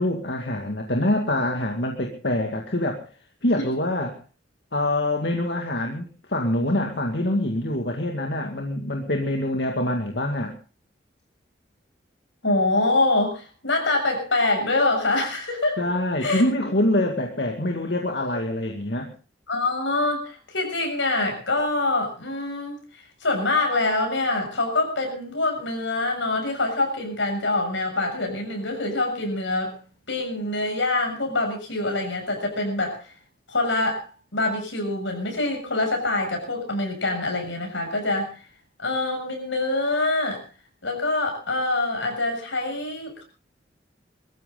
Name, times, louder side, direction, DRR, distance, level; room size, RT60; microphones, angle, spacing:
voice 1, 0.0-3.0 3.4-4.2 4.7-10.5 15.8-19.1, left 1 dB, 65° left, 2 dB, 2.1 m, -25 dB
voice 2, 12.4-15.8 16.2-16.4 19.5-22.8 23.2-29.8 30.1-33.1 33.5-34.1 34.3-38.4 38.8-40.4 40.8-43.2, left 2 dB, 85° left, 3 dB, 6.8 m, -25 dB
22.5 x 14.5 x 3.8 m, 0.35 s
head